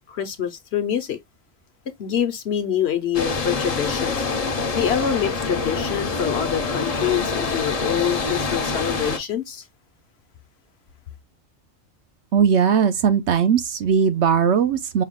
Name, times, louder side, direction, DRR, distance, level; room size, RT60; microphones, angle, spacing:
voice 1, 0.1-1.2 2.0-4.2 4.8-9.6, left 9 dB, 60° left, 0.9 m, -25 dB
sound 1, 3.1-9.2, left 4 dB, 40° left, 0.6 m, -25 dB
voice 2, 12.3-15.0, right 7 dB, 65° right, 0.9 m, -19 dB
5.6 x 2.3 x 3.6 m
omnidirectional pair, 1.3 m